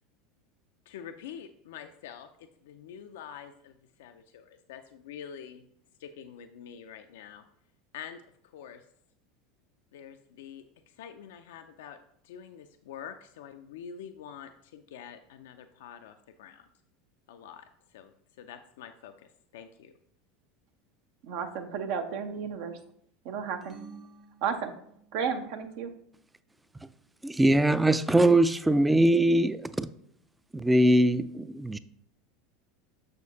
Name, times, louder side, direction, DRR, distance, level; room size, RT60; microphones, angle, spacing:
voice 1, 0.9-5.6 6.0-7.4 7.9-8.8 9.9-12.0 12.2-16.7 17.3-18.1 18.4-19.9, left 8 dB, 75° left, 0.4 m, -46 dB
voice 2, 21.2-22.8 23.2-23.8 24.4-24.7 25.1-25.9, right 6 dB, 65° right, 0.7 m, -33 dB
sound 1, 23.6-25.3, right 5 dB, 30° right, 0.9 m, -50 dB
voice 3, 27.2-29.9 30.5-31.8, right 1 dB, 10° right, 0.3 m, -22 dB
6.4 x 6.2 x 2.8 m
hypercardioid pair, 85°, 0 cm